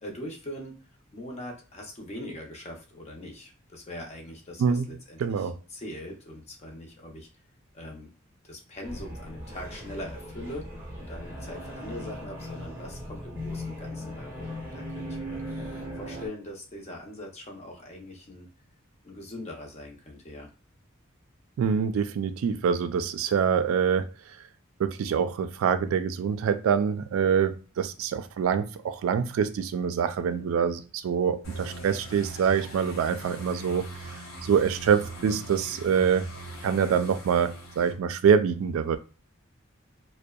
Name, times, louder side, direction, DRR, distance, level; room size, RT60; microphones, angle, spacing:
voice 1, 0.0-7.3 7.7-8.1 8.4-15.4 16.0-18.5 19.0-20.5, left 1 dB, 30° left, 0.6 m, -41 dB
voice 2, 5.2-5.6 21.6-24.1 24.8-33.9 34.4-36.3 36.6-39.0, right 7 dB, 80° right, 0.3 m, -25 dB
sound 1, 8.8-16.3, equal, 10° right, 0.7 m, -38 dB
sound 2, 31.4-37.9, right 2 dB, 80° left, 0.8 m, -41 dB
2.6 x 2.1 x 2.3 m
head